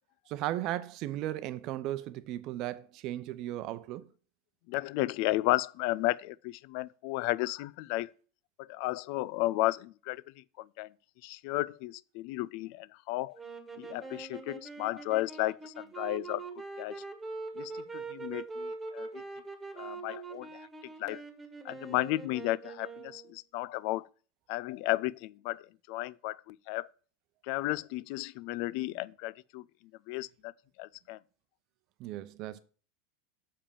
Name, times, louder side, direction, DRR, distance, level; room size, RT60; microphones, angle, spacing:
voice 1, 0.3-4.1 32.0-32.6, right 14 dB, 50° right, 0.7 m, -36 dB
voice 2, 4.7-8.1 8.6-10.9 11.2-13.4 13.8-16.4 16.8-17.0 17.6-19.2 19.8-21.2 21.6-24.1 24.5-26.9 27.4-29.6 30.1-30.5 30.8-31.2, left 18 dB, 55° left, 0.4 m, -34 dB
sound 1, 13.3-23.3, right 4 dB, 15° right, 1.7 m, -43 dB
7.2 x 5.1 x 6.9 m
hypercardioid pair, 85°, 0 cm